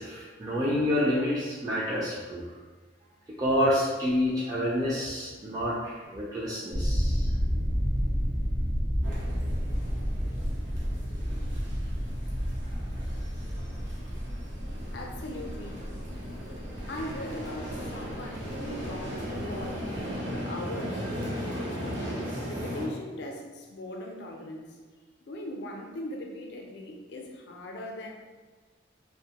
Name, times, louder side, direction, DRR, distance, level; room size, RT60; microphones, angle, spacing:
voice 1, 0.0-2.4 3.4-7.3, left 1 dB, 20° right, -7 dB, 0.3 m, -28 dB
sound 1, 6.7-20.3, equal, 50° right, 0.7 m, -31 dB
sound 2, 9.0-22.9, equal, 90° right, 0.8 m, -38 dB
voice 2, 14.9-15.8 16.9-19.9 20.3-21.1 21.4-22.1 22.4-24.8 25.3-28.1, left 1 dB, 70° left, 1 dB, 0.4 m, -39 dB
2.6 x 2.1 x 2.8 m, 1.3 s
head